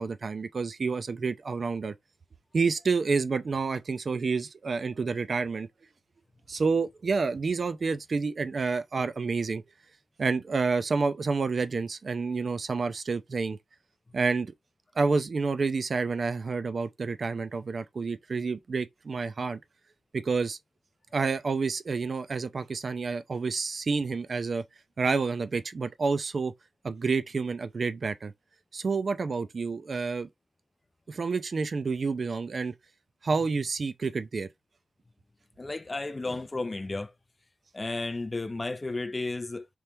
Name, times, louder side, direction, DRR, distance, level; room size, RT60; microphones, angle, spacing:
voice 1, 0.0-1.9 2.5-5.7 6.5-9.6 10.2-13.6 14.1-14.5 15.0-19.6 20.1-20.6 21.1-24.6 25.0-26.5 26.8-28.3 28.7-30.3 31.1-32.7 33.2-34.5, right 4 dB, 40° right, 0.5 m, -29 dB
voice 2, 35.6-37.1 37.7-39.7, left 2 dB, 20° left, 0.3 m, -33 dB
3.0 x 2.7 x 3.4 m
wide cardioid pair, 140°, 0 cm